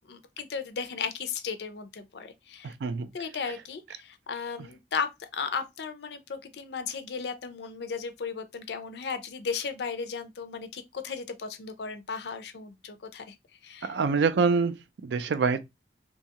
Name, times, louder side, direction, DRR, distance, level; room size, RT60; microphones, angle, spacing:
voice 1, 0.1-2.7 3.1-13.4 13.6-14.0, left 5 dB, 75° left, 0.5 m, -35 dB
voice 2, 2.6-3.1 13.8-14.8 15.0-15.6, right 5 dB, 80° right, 0.4 m, -25 dB
2.7 x 2.3 x 2.8 m
head